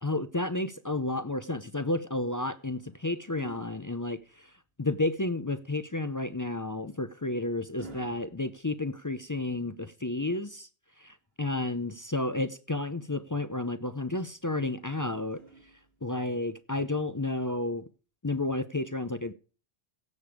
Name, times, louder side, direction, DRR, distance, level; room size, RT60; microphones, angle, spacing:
voice 1, 0.0-4.5 4.8-10.7 11.0-15.4 16.0-17.8 18.2-19.3, left 2 dB, 30° left, 0.4 m, -31 dB
sound 1, 2.2-4.7 6.3-9.5 11.2-12.4 14.4-16.2 17.4-17.6, right 4 dB, 65° right, 2.6 m, -55 dB
16.0 x 6.9 x 4.7 m
omnidirectional pair, 1.1 m